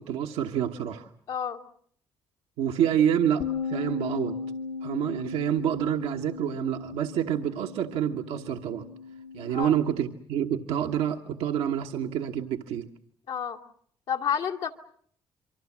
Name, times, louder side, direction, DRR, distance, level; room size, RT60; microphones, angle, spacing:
voice 1, 0.0-1.1 2.6-4.4 4.8-8.9 9.3-12.9, right 9 dB, 90° right, 2 dB, 1.2 m, -28 dB
voice 2, 1.3-1.6 9.5-9.7 13.3-13.6 14.1-14.7, left 8 dB, 80° left, 3 dB, 2.3 m, -29 dB
Bass guitar, 3.4-9.7, left 5 dB, 50° left, 1.2 m, -37 dB
27.5 x 24.0 x 7.3 m, 0.62 s
supercardioid pair, 70°, 10 cm